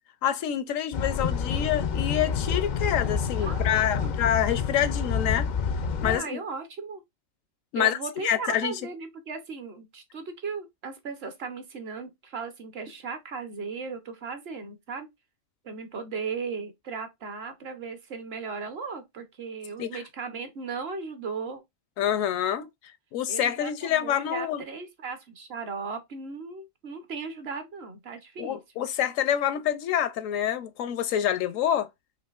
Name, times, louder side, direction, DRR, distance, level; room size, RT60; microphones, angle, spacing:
voice 1, 0.2-5.5 6.0-6.4 7.7-8.0 8.2-8.7 19.8-19.9 22.0-22.7 23.1-24.6 28.4-31.9, left 10 dB, 85° left, 1.0 m, -27 dB
sound 1, 0.9-6.2, left 6 dB, 65° left, 0.4 m, -28 dB
voice 2, 3.4-4.1 6.0-7.0 7.8-15.1 15.6-21.6 22.6-22.7 23.3-28.8, right 5 dB, 55° right, 1.0 m, -37 dB
5.8 x 2.5 x 2.4 m
omnidirectional pair, 1.3 m